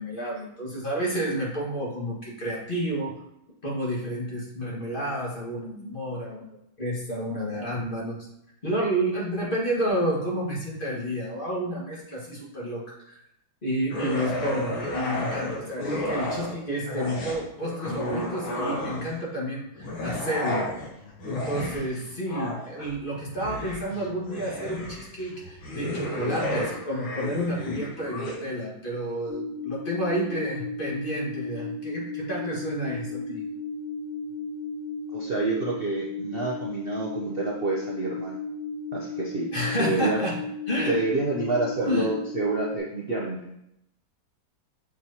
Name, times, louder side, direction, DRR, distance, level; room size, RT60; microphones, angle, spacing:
voice 1, 0.0-3.2 3.6-8.2 8.6-13.2 13.6-20.7 21.3-33.4 39.5-40.4 40.7-41.0 41.8-42.1, equal, 25° left, -4 dB, 1.8 m, -30 dB
sound 1, 13.9-16.6 16.9-19.2 19.8-28.4, left 1 dB, 85° left, 2.3 m, -32 dB
sound 2, 29.3-42.8, left 3 dB, 10° right, 1.4 m, -35 dB
voice 2, 35.1-38.4 38.9-39.5 39.8-40.2 40.9-43.5, right 3 dB, 65° right, -2 dB, 0.5 m, -28 dB
7.6 x 6.4 x 2.9 m, 0.81 s
omnidirectional pair, 2.2 m